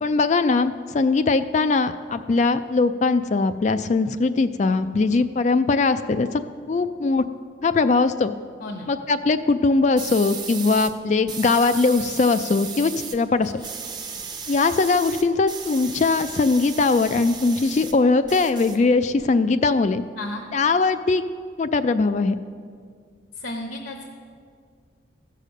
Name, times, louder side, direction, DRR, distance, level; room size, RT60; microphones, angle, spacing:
voice 1, 0.0-6.4 6.7-7.2 7.6-8.3 8.9-13.6 14.5-20.0 20.5-21.2 21.6-22.4, left 3 dB, 35° left, 10 dB, 0.3 m, -20 dB
sound 1, 10.0-10.9 11.3-13.2 13.4-17.9 18.2-19.2, right 6 dB, 20° right, 0.7 m, -35 dB
voice 2, 23.4-24.1, left 1 dB, 60° left, 2 dB, 0.9 m, -33 dB
15.5 x 6.7 x 6.3 m, 2.1 s
head